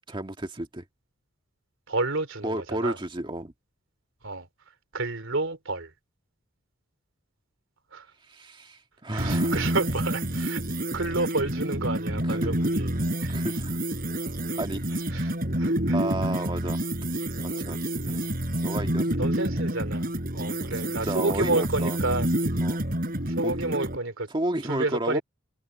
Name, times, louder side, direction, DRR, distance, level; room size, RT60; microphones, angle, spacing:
voice 1, 0.1-0.8 2.4-3.5 8.3-9.7 12.2-12.5 13.3-13.8 14.5-14.8 15.9-16.8 17.5-18.2 18.6-19.3 20.3-20.5 20.8-22.0 22.6-22.8 23.4-23.5 24.3-25.2, right 1 dB, 25° right, 1.8 m, -32 dB
voice 2, 1.9-3.0 4.2-4.5 4.9-5.9 7.9-8.0 9.1-10.6 10.9-12.9 13.2-13.3 15.1-16.0 18.0-18.3 19.1-22.3 23.3-24.3 24.7-25.2, right 2 dB, 70° right, 3.0 m, -30 dB
sound 1, 9.2-24.0, right 1 dB, 45° right, 5.8 m, -28 dB
head